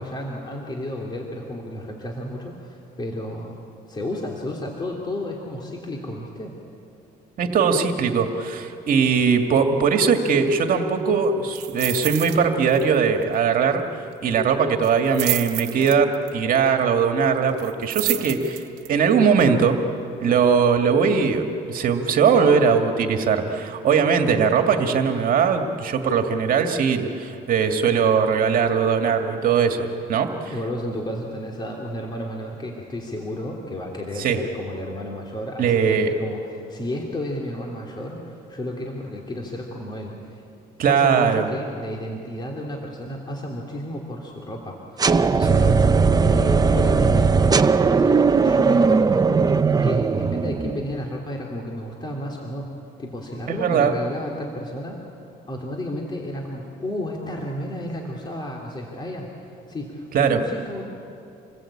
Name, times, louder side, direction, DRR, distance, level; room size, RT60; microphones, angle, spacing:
voice 1, 0.0-3.6 3.9-6.6 20.3-20.4 30.4-40.4 40.9-45.8 46.2-49.3 49.8-52.7 53.0-55.0 55.5-60.8, left 1 dB, 25° left, -1 dB, 3.2 m, -32 dB
voice 2, 7.4-13.8 14.2-18.6 18.9-19.8 20.2-29.8 30.1-30.5 34.2-34.4 35.6-36.1 40.8-41.5 53.5-54.0 60.1-60.4, right 6 dB, 55° right, 5 dB, 2.1 m, -20 dB
sound 1, 11.5-12.4 12.7-12.9 13.2-13.3 14.8-16.3 17.6-18.9 19.4-19.5, right 16 dB, 85° right, 1.2 m, -29 dB
sound 2, 45.0-50.9, right 4 dB, 20° right, 0.8 m, -18 dB
28.0 x 20.5 x 8.7 m, 2.8 s
cardioid pair, 110°, 17 cm